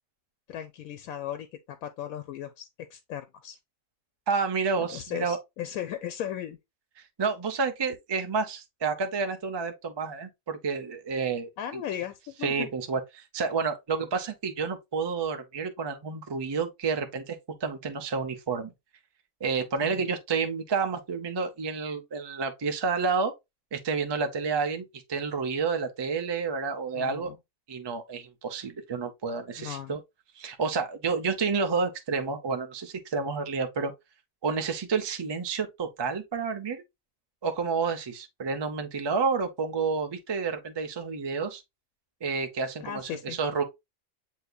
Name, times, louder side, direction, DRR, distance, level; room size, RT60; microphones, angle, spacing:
voice 1, 0.5-1.5 1.8-3.6 4.8-6.6 11.6-12.7 19.8-20.0 26.9-27.4 29.6-30.0 42.8-43.4, left 10 dB, 90° left, 1.0 m, -37 dB
voice 2, 4.3-5.4 7.2-11.8 12.4-18.7 19.4-23.3 23.7-27.3 27.7-30.0 30.4-33.9 34.4-36.8 37.4-41.6 42.2-43.6, right 5 dB, 45° right, 0.3 m, -30 dB
7.9 x 2.8 x 2.2 m
omnidirectional pair, 1.4 m